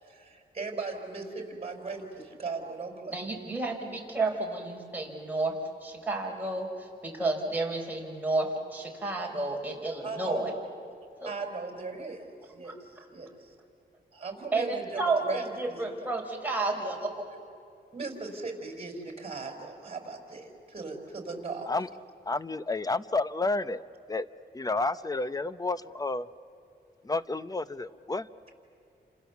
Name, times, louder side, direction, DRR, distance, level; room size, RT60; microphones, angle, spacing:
voice 1, 0.0-3.2 10.0-10.7 11.2-13.5 14.1-15.9 17.9-21.7, right 4 dB, 35° right, 3 dB, 5.0 m, -38 dB
voice 2, 3.1-5.5 5.8-10.5 11.2-11.3 12.6-12.7 14.5-17.4, right 2 dB, 10° right, -1 dB, 4.8 m, -31 dB
voice 3, 22.3-23.8 24.1-24.3 24.5-26.3 27.0-28.3, left 3 dB, 20° left, 14 dB, 0.8 m, -30 dB
29.5 x 26.5 x 7.2 m, 2.6 s
cardioid pair, 95°, 18 cm